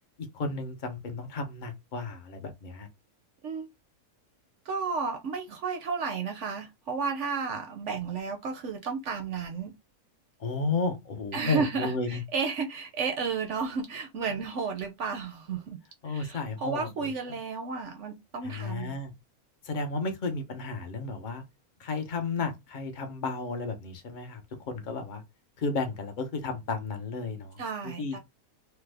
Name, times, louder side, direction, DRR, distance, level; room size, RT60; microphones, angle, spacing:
voice 1, 0.3-2.9 10.4-12.2 14.3-14.4 16.0-17.4 18.4-19.1 19.6-21.4 21.8-25.2 25.6-28.2, left 3 dB, 60° left, 0.5 m, -33 dB
voice 2, 4.7-9.7 11.3-15.8 16.1-18.9 27.6-28.2, right 5 dB, 65° right, 0.8 m, -32 dB
3.3 x 2.0 x 3.3 m
omnidirectional pair, 1.6 m